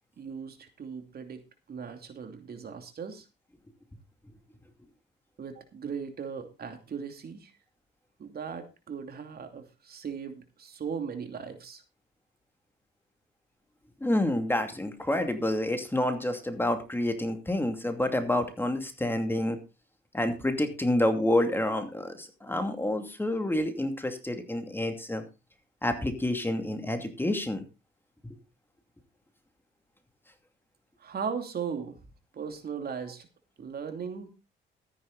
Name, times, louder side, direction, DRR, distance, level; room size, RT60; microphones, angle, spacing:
voice 1, 0.2-1.4 1.7-3.3 5.4-7.5 8.2-11.8 31.0-32.0 32.3-33.3 33.6-34.3, right 6 dB, 50° right, 6 dB, 2.7 m, -38 dB
voice 2, 14.0-19.6 20.1-25.2 25.8-27.6 28.2-28.3, left 1 dB, 10° left, 6 dB, 2.5 m, -28 dB
14.0 x 10.0 x 4.0 m, 0.28 s
cardioid pair, 90°, 20 cm